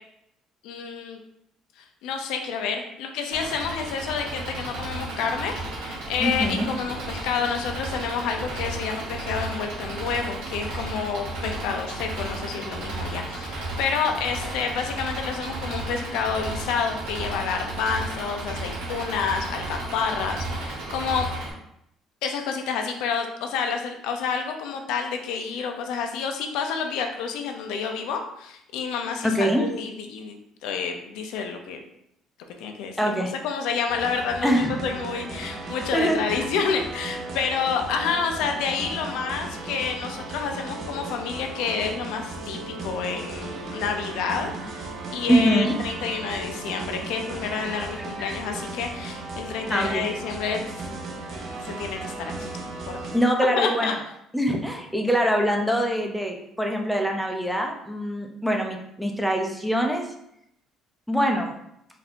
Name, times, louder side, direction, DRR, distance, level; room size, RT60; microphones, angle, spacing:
voice 1, 0.6-1.2 2.0-21.3 22.2-31.8 32.6-50.6 51.3-52.1 52.4-52.5 52.9-53.1 53.6-53.9, left 6 dB, 90° left, 4 dB, 0.6 m, -29 dB
Engine, 3.3-21.5, right 2 dB, 85° right, 1.1 m, -33 dB
voice 2, 6.2-6.6 29.2-29.6 33.0-33.3 34.4-34.8 35.9-36.4 45.3-45.7 49.7-50.1 53.1-53.9 54.3-60.1 61.1-61.6, equal, ahead, 1 dB, 0.5 m, -23 dB
sound 1, 33.9-53.2, right 2 dB, 45° right, 0.7 m, -36 dB
4.0 x 2.6 x 4.2 m, 0.78 s
cardioid pair, 140°, 0 cm